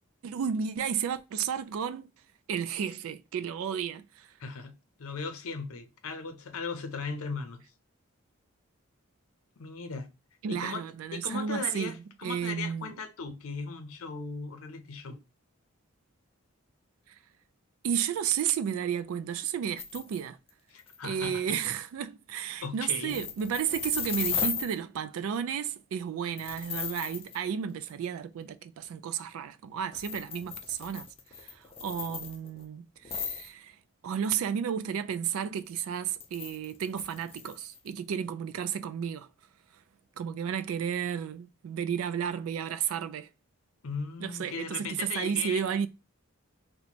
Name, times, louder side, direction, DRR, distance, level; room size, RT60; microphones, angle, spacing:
voice 1, 0.2-2.1 2.5-4.3 10.4-11.9 12.2-12.9 17.8-20.4 21.0-31.1 31.4-33.8 34.0-39.3 40.2-43.3 44.2-45.9, right 8 dB, 80° right, 0.3 m, -32 dB
voice 2, 4.4-7.6 9.6-10.1 10.5-10.8 11.1-15.2 20.7-21.6 22.6-23.2 43.8-45.7, left 4 dB, 80° left, 0.5 m, -38 dB
sound 1, 19.8-20.2 20.5-20.6 20.8-21.0 23.1-24.8 26.4-27.4 27.9-28.0 29.9-32.6 33.0-33.5 36.2-37.9, left 7 dB, 25° left, 0.3 m, -36 dB
2.8 x 2.1 x 4.1 m
head